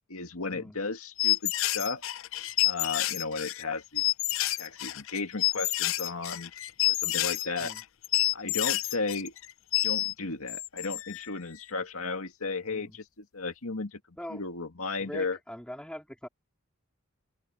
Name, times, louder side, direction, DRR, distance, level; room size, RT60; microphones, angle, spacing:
voice 1, 0.1-2.0 2.6-4.1 4.6-6.5 6.9-7.7 8.3-9.3 9.8-15.4, left 3 dB, 85° left, 2.2 m, -35 dB
sound 1, 1.2-10.1 10.5-11.3, left 16 dB, 70° left, 0.5 m, -29 dB
voice 2, 15.0-16.3, equal, 5° left, 3.7 m, -42 dB
head